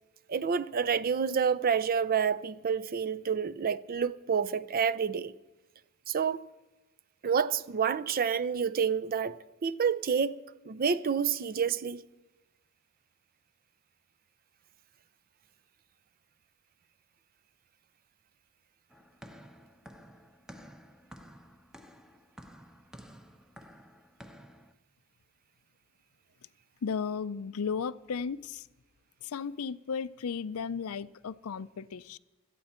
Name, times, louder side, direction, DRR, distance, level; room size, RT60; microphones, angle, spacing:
voice 1, 0.3-5.3 6.1-6.4 7.2-10.4 10.7-12.0, right 6 dB, 40° right, 0.5 m, -28 dB
sound 1, 18.9-24.7, equal, 5° right, 0.8 m, -52 dB
voice 2, 26.8-28.7 29.2-32.2, left 6 dB, 70° left, 0.5 m, -35 dB
17.0 x 13.5 x 4.4 m
head